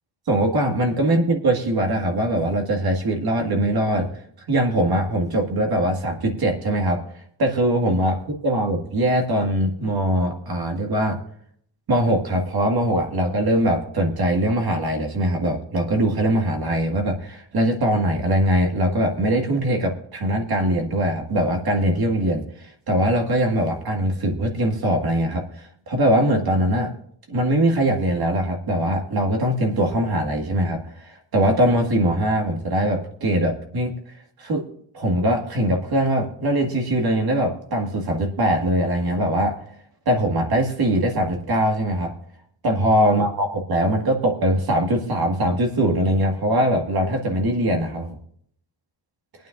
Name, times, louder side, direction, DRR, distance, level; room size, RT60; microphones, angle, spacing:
voice 1, 0.3-4.1 4.5-7.0 7.4-8.2 8.4-11.2 11.9-26.9 27.3-33.9 34.4-34.6 34.9-39.6 40.1-42.1 42.6-48.2, right 1 dB, 55° right, 3 dB, 1.9 m, -21 dB
24.0 x 9.1 x 2.6 m, 0.66 s
wide cardioid pair, 150°, 43 cm